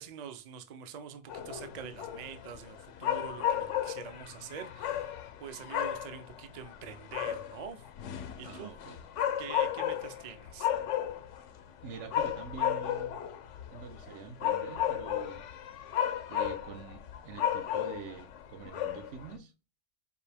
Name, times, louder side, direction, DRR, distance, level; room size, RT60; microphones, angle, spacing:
voice 1, 0.0-7.9 8.4-8.7 9.4-10.7, right 8 dB, 50° right, 0.5 m, -45 dB
sound 1, 1.3-19.4, left 10 dB, 85° left, 0.9 m, -34 dB
voice 2, 8.4-9.0 11.8-13.2 13.7-15.5 16.3-19.5, right 6 dB, 80° right, 1.0 m, -45 dB
4.5 x 2.7 x 3.4 m
omnidirectional pair, 1.2 m